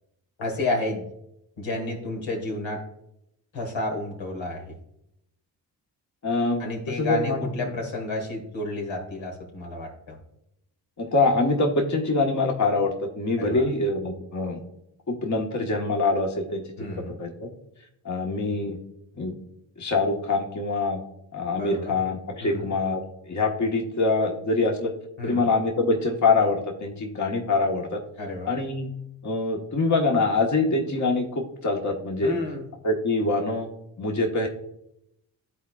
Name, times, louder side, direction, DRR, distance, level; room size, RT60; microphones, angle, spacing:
voice 1, 0.4-1.0 1.6-2.8 3.5-4.8 6.6-10.2 13.4-13.7 16.8-17.2 21.5-22.0 22.4-22.7 25.2-25.5 28.2-28.5 32.2-32.7, left 2 dB, 75° left, 1 dB, 1.7 m, -31 dB
voice 2, 6.2-7.4 11.0-14.6 15.1-16.6 17.2-17.5 18.0-18.8 19.2-19.3 19.8-21.0 21.3-23.0 23.3-24.9 25.2-28.0 28.5-28.9 29.2-32.3 32.8-33.7 34.0-34.5, left 3 dB, 40° left, 1 dB, 1.3 m, -24 dB
12.0 x 4.2 x 2.3 m, 0.79 s
supercardioid pair, 40°, 46 cm